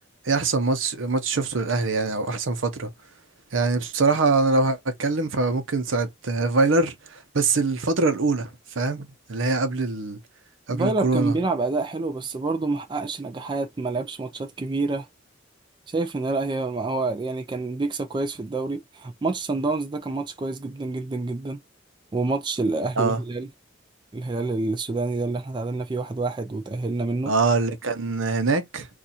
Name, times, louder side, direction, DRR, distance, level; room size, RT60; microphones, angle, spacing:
voice 1, 0.2-2.9 3.5-8.5 8.8-10.2 10.7-11.3 23.0-23.2 27.3-28.9, right 3 dB, 80° right, 0.7 m, -23 dB
voice 2, 10.7-15.1 15.9-21.6 22.1-23.5 24.1-27.3, right 3 dB, 25° right, 0.4 m, -27 dB
2.6 x 2.4 x 4.1 m
head